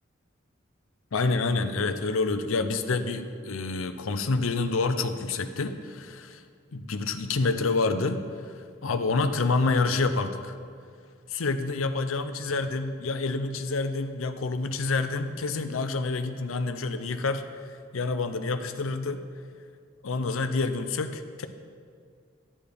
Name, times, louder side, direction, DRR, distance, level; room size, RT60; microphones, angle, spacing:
voice 1, 1.1-6.4 6.7-10.6 11.3-19.2 20.0-21.5, left 3 dB, 85° left, 8 dB, 0.6 m, -28 dB
11.5 x 9.8 x 3.5 m, 2.1 s
head